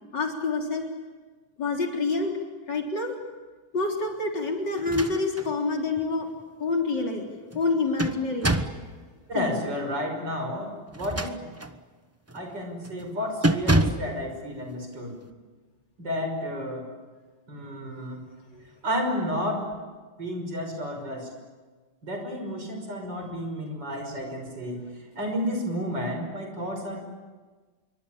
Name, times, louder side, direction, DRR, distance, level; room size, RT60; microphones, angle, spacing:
voice 1, 0.1-0.9 1.6-2.3 2.7-3.1 3.7-6.3 6.6-7.3 7.5-8.5 9.3-9.5 18.5-18.6, left 3 dB, 60° left, 1 dB, 4.3 m, -27 dB
sound 1, 4.8-5.5 6.0-6.1 7.5-8.9 10.9-11.8 12.3-12.5 12.8-13.1 13.4-14.1, right 1 dB, 15° right, 0.5 m, -26 dB
voice 2, 9.3-11.3 12.3-15.2 16.0-16.9 17.5-18.2 18.8-19.7 20.2-21.3 22.0-24.9 25.1-27.1, equal, 60° right, 4 dB, 6.5 m, -31 dB
27.0 x 24.0 x 8.8 m, 1.4 s
omnidirectional pair, 2.1 m